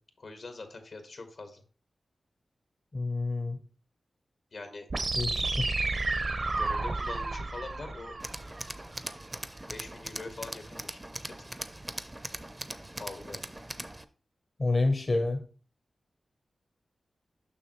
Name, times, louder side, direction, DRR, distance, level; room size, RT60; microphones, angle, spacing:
voice 1, 0.2-1.6 4.5-4.9 6.6-8.2 9.7-11.0 11.3-11.4 12.9-13.4, left 3 dB, 70° left, 7 dB, 1.4 m, -43 dB
voice 2, 2.9-3.6 5.2-5.8 14.6-15.4, left 2 dB, 45° left, 5 dB, 0.9 m, -28 dB
sound 1, 4.9-8.9, right 3 dB, 55° right, 0.8 m, -31 dB
Tools, 8.2-14.0, right 1 dB, 20° right, 0.6 m, -41 dB
6.9 x 5.9 x 3.0 m, 0.37 s
cardioid pair, 50°, 0 cm